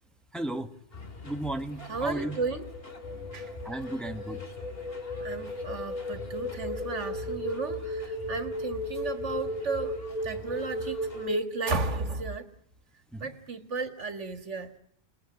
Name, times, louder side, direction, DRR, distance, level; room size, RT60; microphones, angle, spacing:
voice 1, 0.3-0.7 1.2-2.4 3.6-4.4 13.1-13.3, right 1 dB, ahead, 1.4 m, -34 dB
sound 1, 0.9-11.3, left 4 dB, 55° left, 3.1 m, -45 dB
voice 2, 1.9-2.7 3.3-3.5 5.2-12.5 13.2-14.7, right 3 dB, 85° right, 2.1 m, -34 dB
sound 2, 2.2-12.1, left 1 dB, 35° left, 4.3 m, -36 dB
29.0 x 20.0 x 9.7 m
omnidirectional pair, 1.2 m